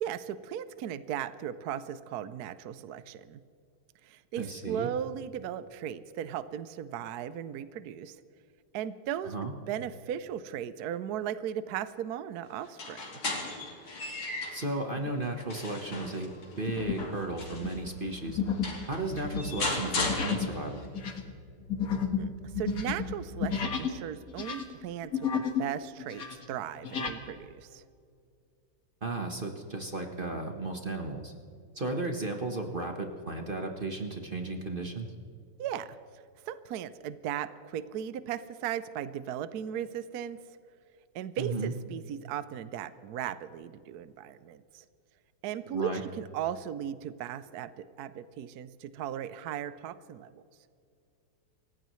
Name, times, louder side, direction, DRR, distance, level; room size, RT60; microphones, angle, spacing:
voice 1, 0.0-3.4 4.0-8.2 8.7-9.3 9.7-13.1 22.2-27.8 35.6-36.0 36.5-40.4 41.1-44.8 45.4-50.4, right 10 dB, 70° right, 14 dB, 0.9 m, -37 dB
voice 2, 4.4-4.9 9.2-9.5 14.5-18.4 18.8-20.9 29.0-31.3 31.7-35.1 41.4-41.7 45.7-46.0, right 2 dB, 30° right, 3 dB, 1.0 m, -34 dB
sound 1, 12.6-14.7 15.2-17.8 18.3-18.4 18.6-20.8, left 2 dB, 80° left, 4.0 m, -36 dB
sound 2, 15.0-15.3 15.8-16.0 16.7-17.1 17.4-24.0 24.3-25.7 26.0-27.2, left 6 dB, 45° left, 1.7 m, -33 dB
28.0 x 16.0 x 3.2 m, 2.4 s
omnidirectional pair, 2.4 m